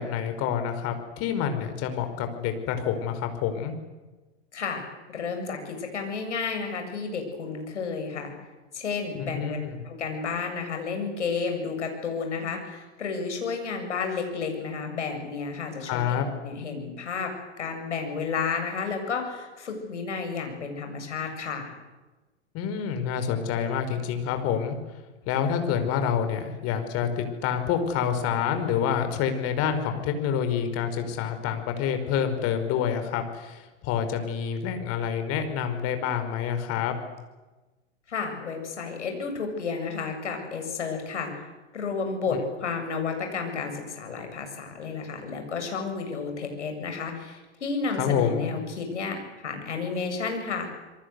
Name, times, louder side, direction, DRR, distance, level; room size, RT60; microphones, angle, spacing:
voice 1, 0.0-3.7 9.1-9.8 15.9-16.3 22.5-24.8 25.3-36.9 48.0-48.6, left 8 dB, 40° left, 8 dB, 5.0 m, -27 dB
voice 2, 4.5-4.8 5.1-8.3 8.7-9.6 9.9-16.2 16.4-21.7 38.1-41.4 41.7-50.7, left 5 dB, 75° left, 4 dB, 7.8 m, -31 dB
27.5 x 23.0 x 8.3 m, 1.2 s
figure-of-eight pair, 95°, 36 cm